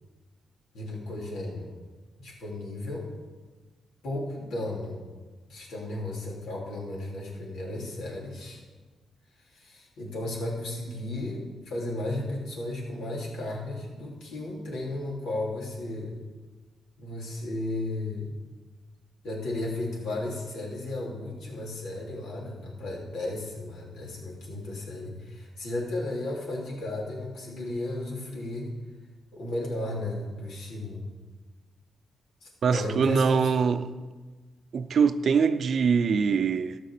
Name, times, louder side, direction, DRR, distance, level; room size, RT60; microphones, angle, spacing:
voice 1, 0.7-1.7 2.2-3.1 4.0-5.0 5.5-8.6 9.4-16.2 17.0-18.4 19.2-28.7 29.3-31.1 32.4-33.5, left 2 dB, 85° left, 3.1 m, -34 dB
voice 2, 32.6-34.0 34.7-36.8, right 6 dB, 55° right, 0.6 m, -23 dB
13.0 x 6.2 x 6.7 m
cardioid pair, 100°, 0 cm